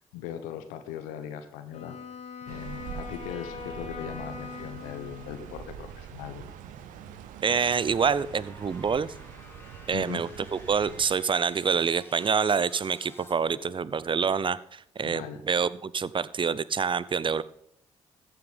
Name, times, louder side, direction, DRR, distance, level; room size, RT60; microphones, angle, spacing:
voice 1, 0.1-2.0 2.4-6.5 9.9-10.2 15.0-15.4, left 9 dB, 75° left, 9 dB, 1.0 m, -39 dB
Wind instrument woodwind instrument, 1.7-5.9, left 5 dB, 50° left, 2.3 m, -42 dB
sound 1, 2.5-11.1, right 9 dB, 70° right, 1.0 m, -44 dB
sound 2, 7.4-13.3, left 1 dB, 15° left, 2.6 m, -52 dB
voice 2, 7.4-9.1 9.9-17.4, right 6 dB, 35° right, 18 dB, 0.7 m, -27 dB
14.5 x 7.7 x 5.2 m, 0.74 s
hypercardioid pair, 40°, 14 cm